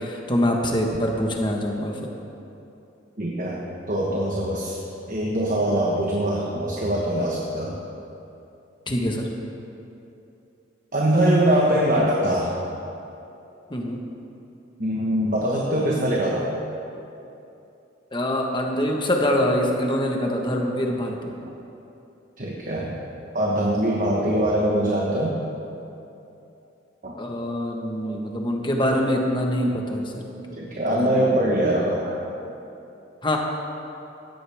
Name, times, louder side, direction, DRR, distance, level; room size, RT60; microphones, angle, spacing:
voice 1, 0.0-2.0 8.9-9.3 13.7-14.0 18.1-21.3 24.0-24.1 27.2-30.2 30.6-31.3 33.2-33.4, equal, 25° left, 1 dB, 1.4 m, -24 dB
voice 2, 3.2-4.8 5.1-7.8 10.9-12.5 14.8-16.5 22.4-23.0 23.3-25.3 27.0-27.2 30.6-32.2, right 1 dB, 45° right, -3 dB, 1.3 m, -23 dB
17.0 x 13.5 x 3.6 m, 2.8 s
head